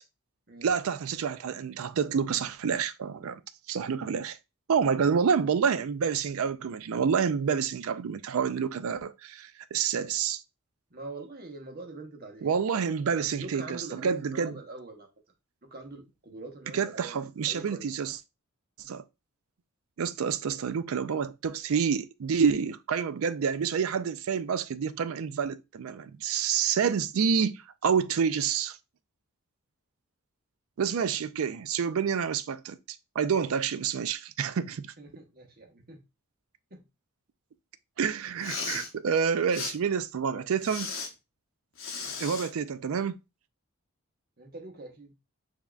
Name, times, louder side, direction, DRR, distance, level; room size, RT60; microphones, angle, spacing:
voice 1, 0.6-3.4 3.7-4.4 4.7-10.4 12.4-14.6 16.7-18.2 18.8-19.0 20.0-28.8 30.8-32.8 33.2-34.9 38.0-40.9 42.2-43.2, right 6 dB, 70° right, 0.4 m, -28 dB
voice 2, 10.9-12.8 13.1-15.1 15.7-17.9 35.0-36.0 36.7-36.8 42.0-42.2 44.4-45.1, right 2 dB, 45° right, 1.1 m, -44 dB
Respiratory sounds, 38.3-38.9 39.5-39.7 40.6-41.1 41.8-42.5, left 5 dB, 60° left, 0.9 m, -36 dB
6.9 x 2.8 x 2.3 m
head